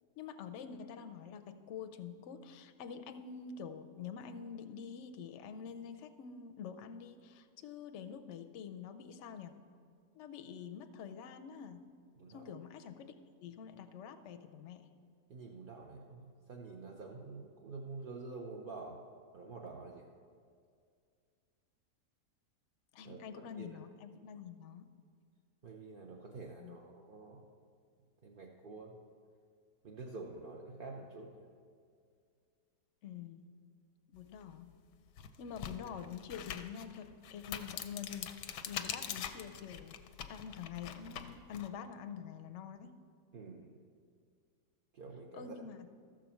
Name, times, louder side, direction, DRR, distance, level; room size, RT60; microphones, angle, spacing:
voice 1, 0.2-9.5 10.1-11.8 12.3-13.1 13.4-14.9 22.9-24.9 26.6-26.8 33.0-33.4 34.1-34.7 35.4-40.0 40.3-43.0 45.3-45.8, left 7 dB, 65° left, 7 dB, 0.8 m, -46 dB
voice 2, 15.3-19.0 19.3-20.1 23.0-23.8 25.6-27.5 28.2-29.0 29.8-31.5 43.3-43.8 44.9-45.7, right 3 dB, 55° right, -1 dB, 0.6 m, -48 dB
sound 1, 34.4-34.5 35.1-41.7, left 9 dB, 85° left, 1.2 m, -44 dB
13.0 x 4.9 x 7.1 m, 2.2 s
omnidirectional pair, 1.7 m